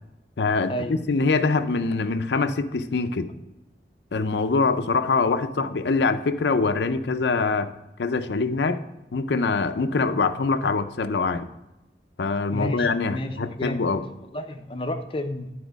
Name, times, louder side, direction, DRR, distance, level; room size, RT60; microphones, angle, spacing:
voice 1, 0.4-3.3 4.1-7.7 8.0-8.8 9.1-11.5 12.2-14.0, left 4 dB, 80° left, 10 dB, 0.5 m, -24 dB
voice 2, 12.5-13.9 14.2-15.5, left 1 dB, 30° left, 6 dB, 0.6 m, -31 dB
9.4 x 4.3 x 5.0 m, 0.96 s
head